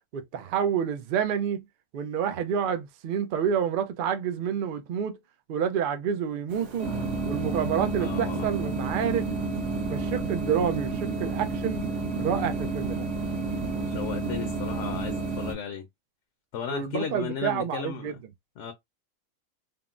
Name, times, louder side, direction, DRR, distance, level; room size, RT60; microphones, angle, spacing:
voice 1, 0.1-1.6 1.9-5.2 5.5-6.9 7.3-9.3 9.9-11.8 12.2-13.1 16.7-18.1, right 8 dB, 85° right, 0.4 m, -28 dB
sound 1, 6.5-15.5, right 3 dB, 60° right, 1.3 m, -30 dB
voice 2, 8.0-8.5 13.8-15.9 16.5-18.2 18.6-18.7, left 7 dB, 65° left, 0.9 m, -35 dB
3.6 x 2.0 x 2.4 m
omnidirectional pair, 1.4 m